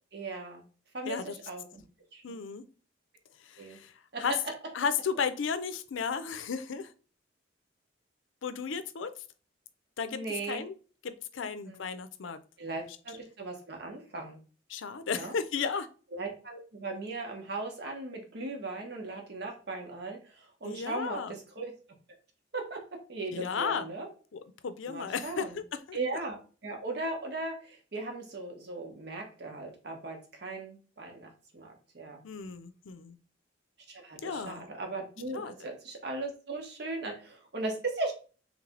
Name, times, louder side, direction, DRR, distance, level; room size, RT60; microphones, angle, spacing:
voice 1, 0.1-0.6 0.9-1.8 2.1-2.4 3.6-3.8 4.1-4.2 10.1-10.6 11.4-11.9 12.6-14.4 15.1-15.3 16.1-21.7 22.5-22.8 23.1-24.1 24.9-25.6 25.9-26.4 26.6-32.2 33.9-38.1, right 2 dB, 55° right, 2 dB, 1.1 m, -38 dB
voice 2, 2.2-2.6 3.4-3.9 4.2-4.3 4.7-6.9 8.4-9.1 10.0-10.2 10.5-10.8 11.0-12.4 14.7-15.9 20.6-21.3 23.3-23.9 24.3-26.0 32.2-33.2 34.2-34.7 35.3-35.5, left 6 dB, 80° left, 12 dB, 0.5 m, -34 dB
3.2 x 3.2 x 3.7 m, 0.37 s
head